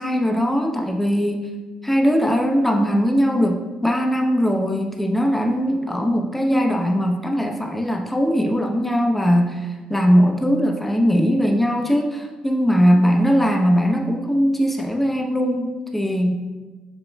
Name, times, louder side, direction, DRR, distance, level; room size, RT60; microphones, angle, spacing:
voice 1, 0.0-1.5 1.8-16.3, equal, 5° left, 1 dB, 0.7 m, -20 dB
7.1 x 3.0 x 2.2 m, 1.3 s
supercardioid pair, 60°, 3 cm